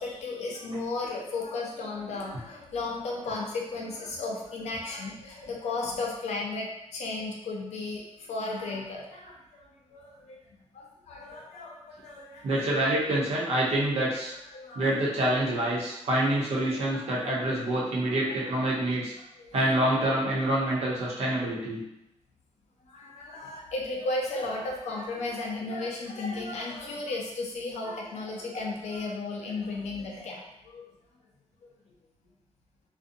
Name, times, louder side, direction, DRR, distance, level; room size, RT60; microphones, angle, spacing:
voice 1, 0.0-10.4 10.7-12.6 13.5-13.6 14.5-14.8 15.1-15.4 16.2-16.3 16.7-17.0 18.1-18.2 18.6-18.7 19.2-20.0 22.8-30.9, left 3 dB, 90° left, -1 dB, 0.6 m, -35 dB
voice 2, 12.4-14.3 14.7-19.1 19.5-21.8, right 1 dB, 65° right, -5 dB, 0.7 m, -26 dB
2.6 x 2.1 x 2.6 m, 0.85 s
wide cardioid pair, 175°, 11 cm